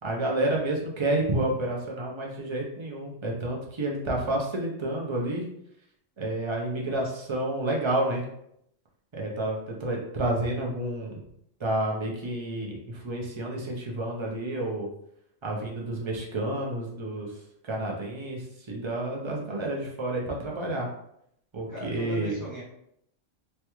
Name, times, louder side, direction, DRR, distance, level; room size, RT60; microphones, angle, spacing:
voice 1, 0.0-5.5 6.2-8.2 9.1-11.2 11.6-14.9 15.4-17.3 17.6-20.9 21.5-22.3, right 1 dB, 35° right, -2 dB, 0.5 m, -30 dB
voice 2, 21.7-22.6, left 1 dB, 30° left, -7 dB, 0.4 m, -38 dB
3.2 x 2.3 x 2.9 m, 0.74 s
omnidirectional pair, 1.3 m